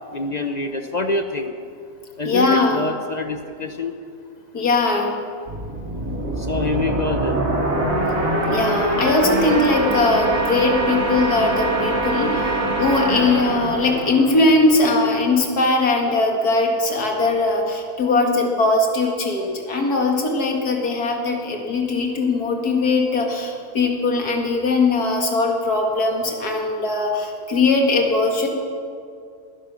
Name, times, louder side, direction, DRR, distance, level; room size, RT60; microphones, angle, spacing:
voice 1, 0.1-1.5 2.2-3.9 6.5-7.4, left 2 dB, 35° left, 6 dB, 0.7 m, -25 dB
voice 2, 2.2-2.8 4.5-5.1 8.5-12.4 12.8-28.5, left 3 dB, 80° left, 1 dB, 2.5 m, -20 dB
sound 1, 5.5-15.0, right 1 dB, 60° right, 3.1 m, -23 dB
20.0 x 10.5 x 6.3 m, 2.5 s
omnidirectional pair, 1.6 m